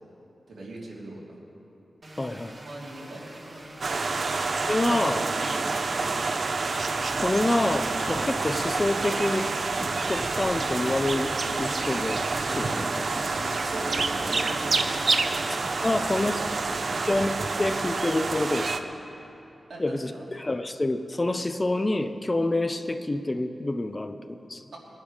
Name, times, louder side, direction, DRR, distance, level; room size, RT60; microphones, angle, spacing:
voice 1, 0.5-1.4 2.6-3.5 4.1-4.6 4.9-6.2 13.6-15.4 16.0-16.5 16.9-17.1 19.1-19.2 19.7-20.3, right 1 dB, 85° right, -4 dB, 3.0 m, -41 dB
sound 1, 2.0-6.6, right 1 dB, 35° right, 1.2 m, -46 dB
voice 2, 2.2-2.6 4.6-5.2 7.2-9.5 9.8-11.3 11.6-13.3 15.8-16.4 17.1-18.9 19.8-24.6, left 2 dB, 20° left, 9 dB, 0.5 m, -27 dB
sound 2, 3.8-18.8, right 3 dB, 50° right, 0.6 m, -28 dB
sound 3, 7.8-15.2, left 1 dB, 55° left, 2.3 m, -42 dB
21.0 x 10.5 x 4.9 m, 3.0 s
wide cardioid pair, 155°, 0 cm